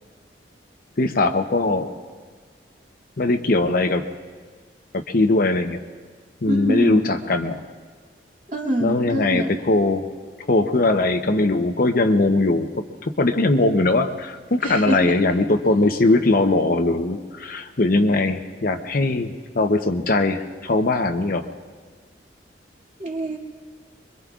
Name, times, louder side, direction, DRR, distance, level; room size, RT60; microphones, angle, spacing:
voice 1, 1.0-1.9 3.2-4.0 4.9-5.8 6.4-7.6 8.8-10.1 10.5-12.7 13.0-21.5, left 2 dB, 50° left, 6 dB, 0.8 m, -20 dB
voice 2, 6.5-7.1 8.5-9.5 14.6-15.2 23.0-23.4, equal, 45° right, -2 dB, 2.4 m, -24 dB
25.5 x 23.0 x 2.4 m, 1.6 s
head